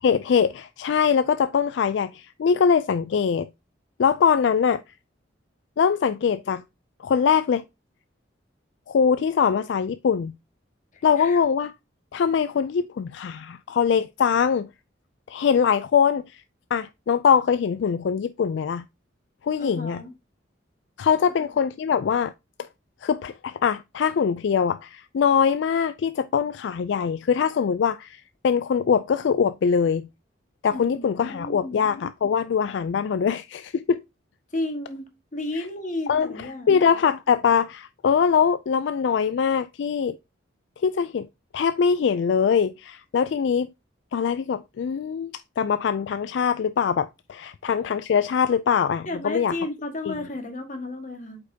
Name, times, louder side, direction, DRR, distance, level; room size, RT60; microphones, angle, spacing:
voice 1, 0.0-3.5 4.0-4.8 5.8-6.6 7.0-7.6 8.9-10.3 11.0-11.7 12.1-14.7 15.3-16.4 16.7-18.8 19.4-20.0 21.0-22.3 23.0-30.1 30.6-34.0 35.5-35.6 36.1-40.2 40.8-41.3 41.5-43.7 44.1-49.5 50.1-50.2, left 6 dB, 70° left, 0.3 m, -22 dB
voice 2, 10.9-11.4 19.6-20.1 21.2-21.3 30.7-31.9 34.5-36.9 49.0-51.4, left 2 dB, 40° left, 1.7 m, -33 dB
8.0 x 5.2 x 2.8 m
head